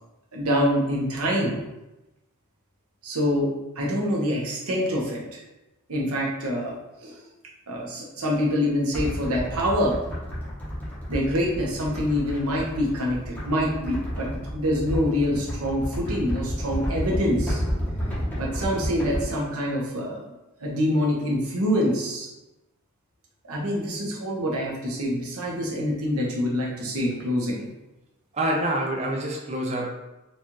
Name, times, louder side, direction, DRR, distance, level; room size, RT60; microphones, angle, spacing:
voice 1, 0.3-1.6 3.0-3.5 3.8-5.4 5.9-6.8 7.0-7.3 7.7-10.0 11.1-17.6 18.4-20.2 20.6-22.3 23.4-27.7, equal, 85° right, -3 dB, 0.9 m, -25 dB
sound 1, 8.9-19.2, equal, 10° left, 0.9 m, -31 dB
voice 2, 28.3-29.9, right 1 dB, 30° right, 0 dB, 0.4 m, -26 dB
4.1 x 2.4 x 3.0 m, 0.99 s
head